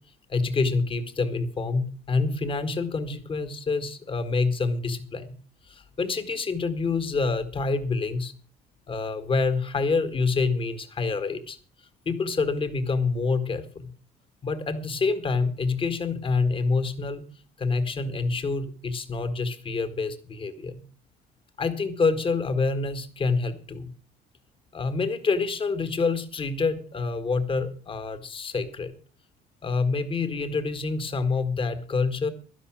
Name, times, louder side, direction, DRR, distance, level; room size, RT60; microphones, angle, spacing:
voice 1, 0.3-5.3 5.7-8.3 8.9-11.6 12.0-13.9 14.4-17.2 17.6-20.8 21.6-23.9 24.7-28.9 29.6-32.3, left 4 dB, 30° left, 10 dB, 1.7 m, -27 dB
12.0 x 11.0 x 6.0 m, 0.39 s
cardioid pair, 110°, 17 cm